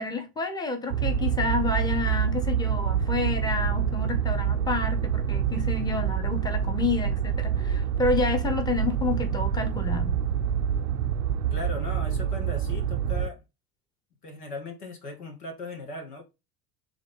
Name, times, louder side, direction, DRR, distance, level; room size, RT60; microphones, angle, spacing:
voice 1, 0.0-10.2, left 3 dB, 10° left, 0.9 m, -29 dB
sound 1, 0.9-13.3, right 8 dB, 75° right, 0.6 m, -26 dB
voice 2, 11.5-13.4 14.2-16.2, left 2 dB, 80° left, 1.6 m, -38 dB
3.6 x 3.4 x 3.7 m
figure-of-eight pair, 70°, 46 cm